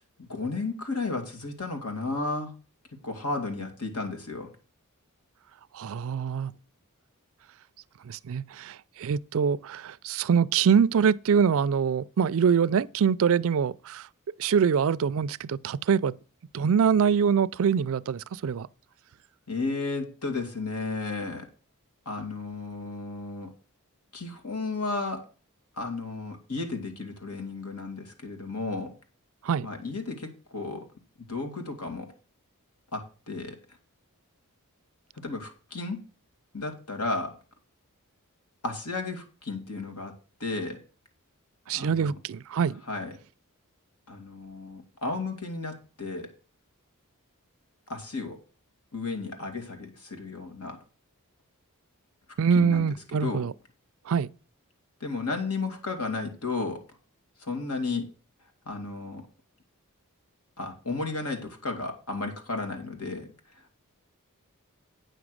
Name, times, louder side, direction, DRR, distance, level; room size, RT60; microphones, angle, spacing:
voice 1, 0.0-2.5 3.0-4.5 19.5-21.5 22.1-23.5 24.1-25.2 25.8-28.9 29.6-30.9 31.3-32.1 32.9-33.6 35.2-36.0 36.5-37.4 38.6-40.1 40.4-40.8 41.7-42.1 42.9-43.1 44.1-46.3 47.9-48.4 48.9-50.8 52.5-52.9 53.2-53.5 55.0-56.8 57.4-58.1 58.7-59.3 60.6-63.3, left 3 dB, 80° left, 2.5 m, -33 dB
voice 2, 5.7-6.5 8.1-14.1 14.4-16.1 16.5-18.7 29.4-29.7 41.7-42.8 52.4-53.5 54.1-54.3, right 7 dB, 65° right, 0.4 m, -24 dB
9.1 x 6.0 x 6.4 m
head